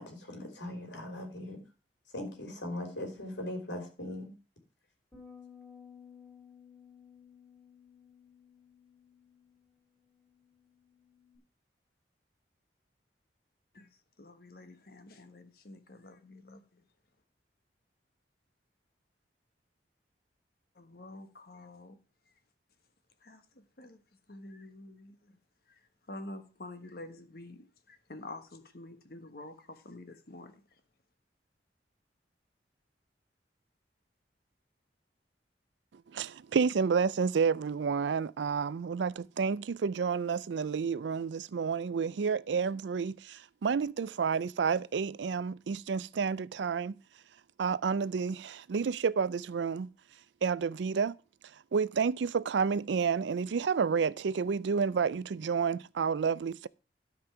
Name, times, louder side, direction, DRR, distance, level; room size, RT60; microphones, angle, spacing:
voice 1, 0.0-1.6 2.1-4.3, left 1 dB, 85° left, 3.4 m, -40 dB
sound 1, 5.1-11.4, left 7 dB, 10° left, 3.9 m, -56 dB
voice 2, 14.2-16.6 20.8-21.9 23.2-23.4 23.8-24.0 24.3-25.2 26.1-30.5, left 2 dB, 55° left, 1.4 m, -48 dB
voice 3, 36.1-47.0 47.6-49.9 50.4-51.2 51.7-56.7, right 6 dB, 80° right, 0.4 m, -30 dB
12.5 x 5.3 x 6.0 m
head